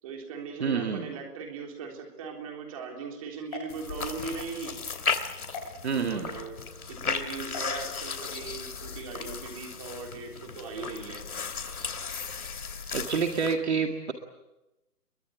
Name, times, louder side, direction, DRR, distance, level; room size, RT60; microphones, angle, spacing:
voice 1, 0.0-4.7 5.9-11.2, right 5 dB, 20° right, 2 dB, 3.7 m, -39 dB
voice 2, 0.6-1.1 5.8-6.3 12.9-14.1, right 5 dB, 45° right, 4 dB, 1.9 m, -28 dB
sound 1, 3.4-4.5 5.5-5.7 7.5-7.7, left 4 dB, 25° left, 6.4 m, -42 dB
sound 2, 3.7-13.5, left 5 dB, 65° left, 3.0 m, -35 dB
23.0 x 23.0 x 9.1 m, 0.99 s
hypercardioid pair, 175°, 47 cm